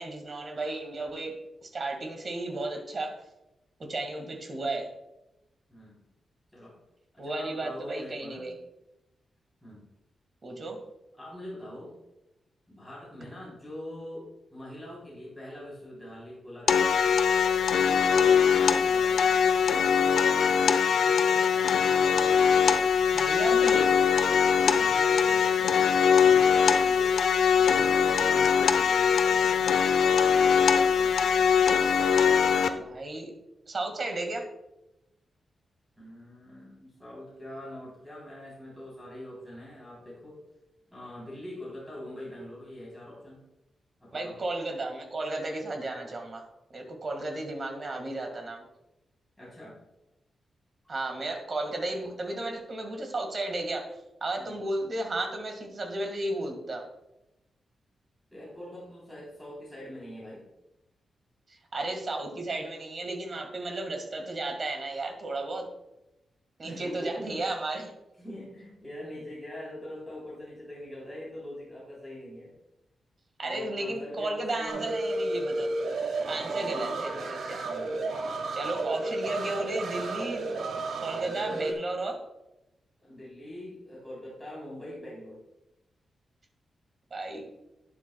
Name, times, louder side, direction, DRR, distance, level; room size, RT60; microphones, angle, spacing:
voice 1, 0.0-1.4 1.6-3.2 3.9-4.9 7.2-8.5 10.4-10.8 23.1-24.0 32.8-33.3 33.7-34.5 44.1-48.6 50.9-53.9 54.2-56.9 61.5-65.7 66.6-67.9 73.4-75.7 76.2-77.6 78.5-80.5 81.0-82.1 87.1-87.5, right 2 dB, 40° right, 3 dB, 1.8 m, -34 dB
voice 2, 5.7-6.1 6.5-6.7 7.1-8.5 9.6-9.8 11.2-11.9 12.7-17.1 17.7-19.5 20.9-21.7 24.5-27.2 27.5-30.0 30.4-31.9 36.0-40.4 40.9-43.4 44.0-44.4 49.4-49.8 54.4-54.6 58.3-60.4 66.6-67.5 68.2-72.5 73.4-75.0 76.3-77.9 81.2-81.8 83.0-85.4, left 1 dB, ahead, -7 dB, 3.5 m, -43 dB
sound 1, 16.7-32.7, left 7 dB, 80° left, 0.6 m, -22 dB
sound 2, 74.7-81.7, right 2 dB, 85° right, 1.5 m, -32 dB
11.5 x 9.9 x 2.3 m, 0.92 s
wide cardioid pair, 160°, 0 cm